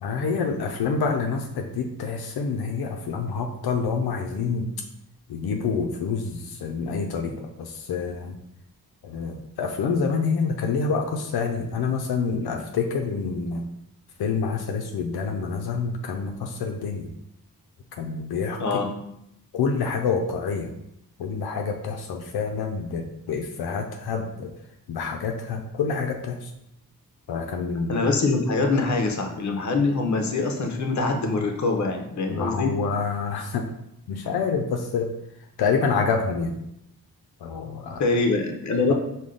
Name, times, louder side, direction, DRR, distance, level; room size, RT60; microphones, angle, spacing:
voice 1, 0.0-4.7 5.3-8.4 9.0-13.6 14.2-17.1 18.0-18.6 19.5-20.7 21.2-24.5 24.9-26.5 27.3-28.0 32.3-33.6 34.1-35.1 35.6-36.5 37.4-38.0, left 5 dB, 85° left, 3 dB, 0.5 m, -27 dB
voice 2, 27.9-32.7 38.0-38.9, left 3 dB, 50° left, 3 dB, 0.7 m, -24 dB
5.0 x 2.2 x 3.7 m, 0.80 s
wide cardioid pair, 90°, 37 cm